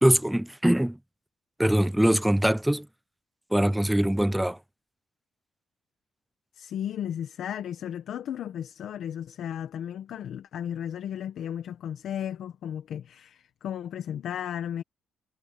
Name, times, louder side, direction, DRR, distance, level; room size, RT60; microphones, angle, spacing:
voice 1, 0.0-1.0 1.6-2.9 3.5-4.6, right 1 dB, 5° right, 0.4 m, -22 dB
voice 2, 6.5-14.8, left 9 dB, 70° left, 1.5 m, -34 dB
cardioid pair, 90°, 0 cm